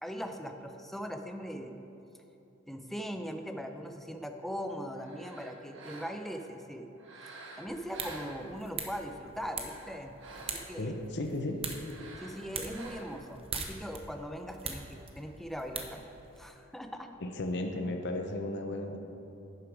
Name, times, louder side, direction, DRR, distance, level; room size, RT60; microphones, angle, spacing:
voice 1, 0.0-1.8 2.7-6.9 7.6-11.0 12.2-17.1, equal, ahead, 5 dB, 0.5 m, -40 dB
sound 1, 4.9-6.4 7.0-8.9 9.4-10.9 11.8-13.3, right 2 dB, 65° right, 1.3 m, -49 dB
sound 2, 7.7-16.5, right 5 dB, 30° right, 0.8 m, -43 dB
voice 2, 10.8-11.6 17.2-19.0, left 1 dB, 55° left, 5 dB, 0.8 m, -34 dB
11.0 x 6.9 x 4.8 m, 3.0 s
head